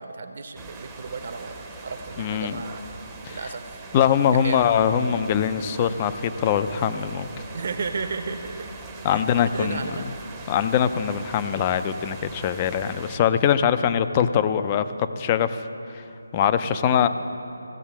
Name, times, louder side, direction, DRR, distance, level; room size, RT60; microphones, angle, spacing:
voice 1, 0.0-2.8 3.3-3.6 4.3-4.7 7.5-8.5 9.0-10.1 16.6-17.1, right 4 dB, 40° right, 7 dB, 0.8 m, -34 dB
sound 1, 0.5-13.2, right 3 dB, 10° right, 0.7 m, -41 dB
voice 2, 2.2-2.6 3.2-3.4 3.9-7.3 9.0-10.1 10.5-15.7 15.9-16.0 16.3-17.1, left 8 dB, 20° left, 11 dB, 0.3 m, -22 dB
15.0 x 7.2 x 7.2 m, 2.9 s
figure-of-eight pair, 170°, 0 cm